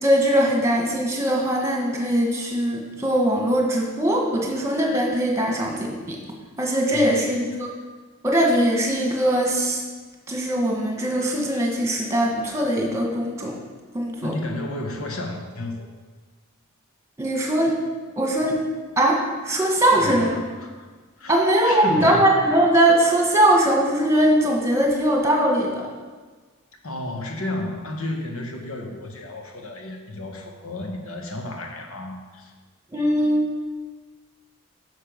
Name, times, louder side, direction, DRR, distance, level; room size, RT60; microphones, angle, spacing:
voice 1, 0.0-6.2 6.6-7.7 8.2-9.8 10.3-13.5 13.9-14.3 17.2-17.7 18.2-18.6 19.0-20.3 21.3-25.8 32.9-33.5, right 1 dB, 15° right, -1 dB, 1.6 m, -21 dB
voice 2, 14.2-15.9 19.9-20.9 21.2-22.3 26.8-32.5, left 1 dB, 65° left, 3 dB, 1.4 m, -32 dB
9.7 x 6.6 x 5.3 m, 1.4 s
head